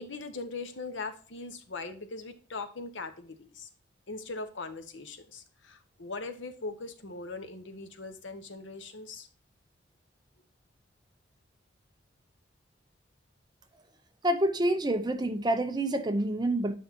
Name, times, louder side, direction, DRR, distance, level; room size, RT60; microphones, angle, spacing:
voice 1, 0.0-3.7 4.1-9.3, left 3 dB, 85° left, 1.0 m, -40 dB
voice 2, 14.2-16.8, right 1 dB, 20° right, 0.7 m, -27 dB
9.4 x 5.5 x 2.8 m
head